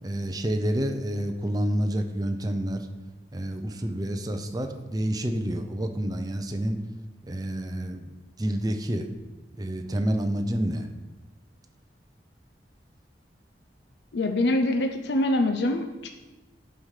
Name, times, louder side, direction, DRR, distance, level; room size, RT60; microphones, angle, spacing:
voice 1, 0.0-2.9 3.3-6.8 7.2-8.1 8.4-9.1 9.5-10.9, right 1 dB, 20° right, 5 dB, 0.6 m, -28 dB
voice 2, 14.1-16.1, left 1 dB, 75° left, 5 dB, 0.5 m, -24 dB
8.3 x 4.9 x 5.7 m, 1.1 s
head